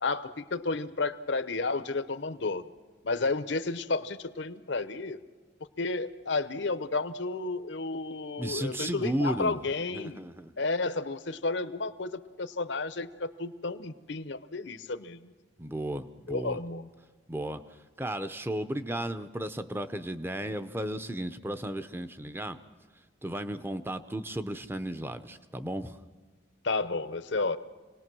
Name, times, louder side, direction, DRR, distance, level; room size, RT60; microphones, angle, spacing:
voice 1, 0.0-2.6 3.0-5.2 5.8-10.2 10.6-15.3 16.3-16.9 26.6-27.6, left 3 dB, 65° left, 13 dB, 0.9 m, -32 dB
voice 2, 8.4-9.6 9.9-10.5 15.6-16.6 17.3-17.6 18.0-22.6 23.2-26.0, right 1 dB, 10° right, 11 dB, 0.6 m, -34 dB
26.5 x 19.0 x 6.2 m, 1.4 s
head